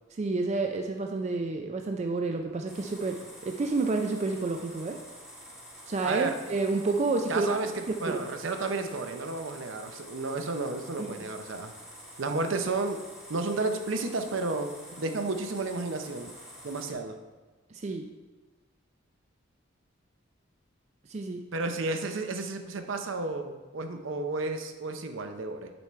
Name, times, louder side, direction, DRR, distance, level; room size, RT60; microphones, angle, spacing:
voice 1, 0.2-5.0 5.9-7.5 7.9-8.2 11.0-11.1 17.7-18.1 21.1-21.4, right 3 dB, 35° right, 4 dB, 0.3 m, -29 dB
sound 1, 2.7-16.9, equal, 5° right, 1.5 m, -48 dB
voice 2, 6.0-6.4 7.3-11.7 12.2-13.0 13.3-16.3 16.6-17.2 21.5-25.7, right 3 dB, 65° right, 6 dB, 0.6 m, -32 dB
7.0 x 4.8 x 4.3 m, 1.2 s
head